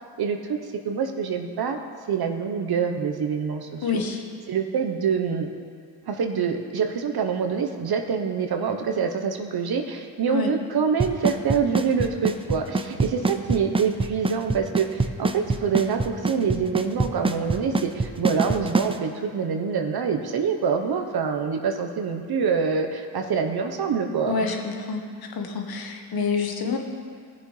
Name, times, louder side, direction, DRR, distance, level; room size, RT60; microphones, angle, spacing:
voice 1, 0.2-1.8 2.1-4.0 4.5-5.5 6.1-24.4, right 6 dB, 55° right, 5 dB, 1.0 m, -26 dB
voice 2, 3.8-4.2 10.3-10.5 24.3-25.0 25.3-26.8, left 5 dB, 50° left, 3 dB, 1.4 m, -27 dB
Drum kit / Snare drum / Bass drum, 11.0-19.0, right 3 dB, 10° right, 0.5 m, -23 dB
15.5 x 6.9 x 3.3 m, 2.1 s
supercardioid pair, 55°, 45 cm